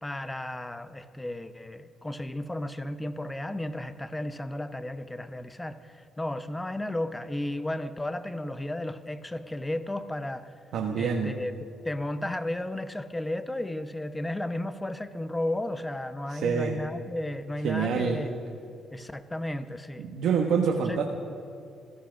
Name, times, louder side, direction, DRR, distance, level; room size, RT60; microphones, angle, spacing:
voice 1, 0.0-10.5 11.0-11.5 11.8-18.4 18.9-20.1 20.9-21.0, left 1 dB, 10° left, 12 dB, 0.8 m, -34 dB
voice 2, 10.7-11.4 16.3-16.8 17.6-18.2 20.0-21.0, right 6 dB, 75° right, 1 dB, 1.3 m, -26 dB
15.5 x 12.5 x 6.4 m, 2.5 s
cardioid pair, 90°, 0 cm